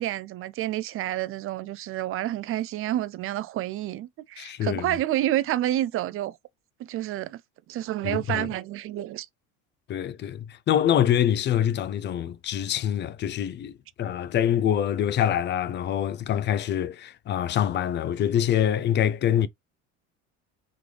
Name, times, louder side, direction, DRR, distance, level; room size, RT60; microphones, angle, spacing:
voice 1, 0.0-6.4 6.9-7.4 7.7-9.3, right 13 dB, 40° right, 0.4 m, -29 dB
voice 2, 4.4-5.0 8.0-8.5 9.9-19.5, left 10 dB, 35° left, 0.4 m, -25 dB
3.7 x 3.3 x 3.2 m
supercardioid pair, 105°, 33 cm